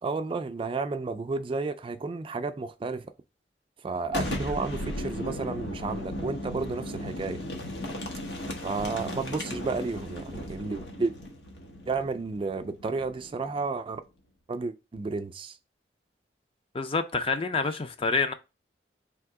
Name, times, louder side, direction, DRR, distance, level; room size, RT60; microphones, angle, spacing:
voice 1, 0.0-3.1 3.8-7.4 8.6-11.1 11.9-14.0 14.5-15.6, right 3 dB, 30° right, 0.3 m, -32 dB
Boom, 4.1-13.7, left 1 dB, 80° left, 1.0 m, -36 dB
voice 2, 16.7-18.3, left 4 dB, 30° left, 0.4 m, -27 dB
3.5 x 2.8 x 4.7 m
head